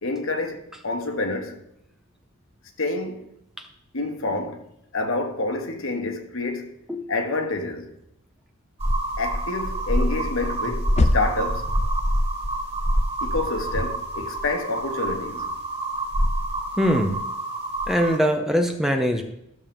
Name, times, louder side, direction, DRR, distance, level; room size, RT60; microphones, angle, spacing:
voice 1, 0.0-1.6 2.8-3.3 3.9-4.6 4.9-6.7 7.1-7.9 9.2-11.7 13.2-15.4, left 2 dB, 65° left, 1.3 m, -28 dB
sound 1, 8.8-18.2, right 1 dB, 25° right, 2.4 m, -26 dB
sound 2, 10.4-12.4 13.3-14.5, left 2 dB, 30° left, 0.4 m, -27 dB
voice 2, 16.8-17.2 17.9-19.2, equal, ahead, 0.7 m, -21 dB
14.0 x 7.3 x 3.5 m
head